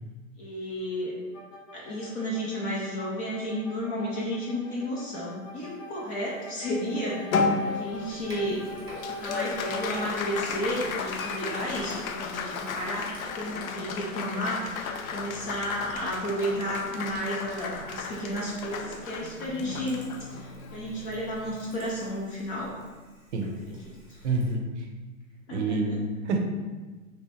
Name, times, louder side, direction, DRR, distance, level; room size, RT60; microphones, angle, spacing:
voice 1, 0.4-1.1 1.7-7.3 7.6-8.8 9.1-13.1 13.3-22.7 24.1-24.2 25.5-26.0, equal, 20° left, -5 dB, 0.4 m, -32 dB
sound 1, 1.3-10.3, left 1 dB, 70° left, 0.9 m, -43 dB
Applause, 7.3-22.0, left 4 dB, 85° left, 0.5 m, -34 dB
Sink (filling or washing), 7.9-24.5, right 1 dB, 10° right, 1.0 m, -49 dB
voice 2, 24.2-24.8 25.5-26.4, right 3 dB, 55° right, 3 dB, 0.6 m, -27 dB
3.2 x 2.8 x 3.0 m, 1.3 s
hypercardioid pair, 120°, 41 cm